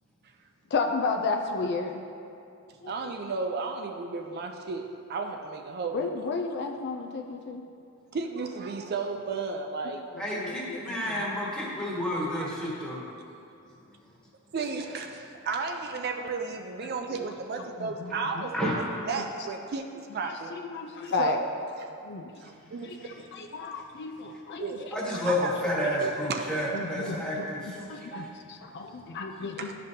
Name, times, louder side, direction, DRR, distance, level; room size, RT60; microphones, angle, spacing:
voice 1, 0.7-1.9 2.8-2.9 5.9-7.6 10.4-11.2 17.8-18.5 20.3-21.4 22.0-22.3 22.8-24.8 26.7-29.7, left 4 dB, 50° left, 4 dB, 0.4 m, -33 dB
voice 2, 2.9-6.2 8.1-10.0 14.5-19.8 20.1-20.5 21.2-21.5 22.4-23.5 24.6-24.9 25.3-25.5 25.8-26.4 28.1-28.3 29.6-29.7, right 4 dB, 45° right, 4 dB, 0.4 m, -33 dB
voice 3, 10.2-13.0 17.1-17.2 18.5-18.7 24.9-28.1, left 1 dB, 5° left, -6 dB, 1.4 m, -30 dB
11.5 x 5.2 x 2.8 m, 2.5 s
head